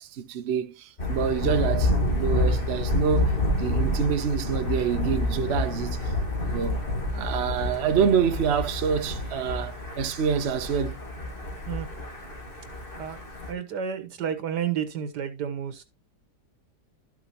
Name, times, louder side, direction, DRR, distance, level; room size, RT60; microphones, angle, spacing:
voice 1, 0.0-6.1 6.4-6.8 7.1-11.0, right 7 dB, 50° right, 0.9 m, -27 dB
Thunder, 1.0-13.5, left 1 dB, 35° left, 2.1 m, -28 dB
voice 2, 13.5-15.8, right 8 dB, 85° right, 1.8 m, -31 dB
12.5 x 5.8 x 2.9 m
omnidirectional pair, 1.8 m